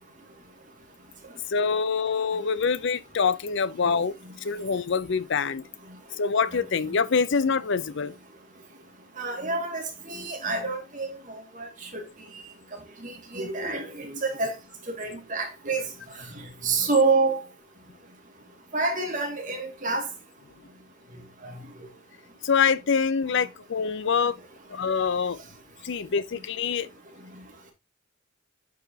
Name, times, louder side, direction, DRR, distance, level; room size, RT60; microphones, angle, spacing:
voice 1, 1.5-5.6 6.2-8.1 22.4-24.4 24.7-25.4 25.8-26.9, left 5 dB, 60° left, 0.5 m, -25 dB
voice 2, 9.2-12.0 12.7-14.5 14.9-15.9 16.1-17.4 18.7-20.1 21.4-21.6, right 3 dB, 40° right, 2.1 m, -28 dB
9.1 x 4.8 x 2.8 m
head